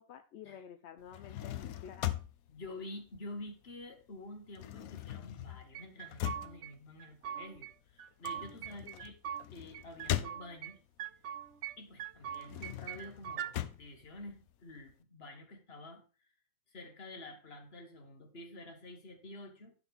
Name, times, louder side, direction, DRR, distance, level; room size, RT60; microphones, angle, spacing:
voice 1, 0.0-2.1 8.8-9.0, left 8 dB, 60° left, 7 dB, 0.8 m, -51 dB
sound 1, 1.0-3.8 4.1-10.9 11.4-14.9, left 13 dB, 90° left, 1.1 m, -41 dB
voice 2, 2.5-9.2 9.5-10.8 11.8-16.0 16.7-19.7, left 2 dB, 45° left, 4 dB, 1.7 m, -49 dB
sound 2, 5.7-6.7 7.0-7.7 8.0-9.4 9.7-10.7 11.0-11.7 12.0-13.5, right 10 dB, 65° right, 0.8 m, -42 dB
11.0 x 5.8 x 3.5 m, 0.35 s
omnidirectional pair, 1.5 m